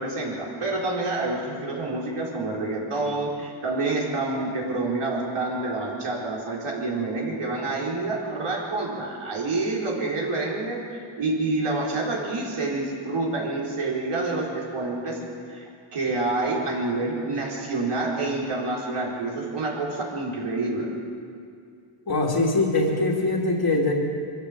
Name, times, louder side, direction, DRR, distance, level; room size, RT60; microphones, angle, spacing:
voice 1, 0.0-10.8 11.2-15.2 15.5-20.9, right 2 dB, 85° right, -3 dB, 4.5 m, -28 dB
voice 2, 22.1-23.9, left 2 dB, 45° left, 0 dB, 2.8 m, -22 dB
24.0 x 15.0 x 7.5 m, 2.3 s
wide cardioid pair, 170°, 50 cm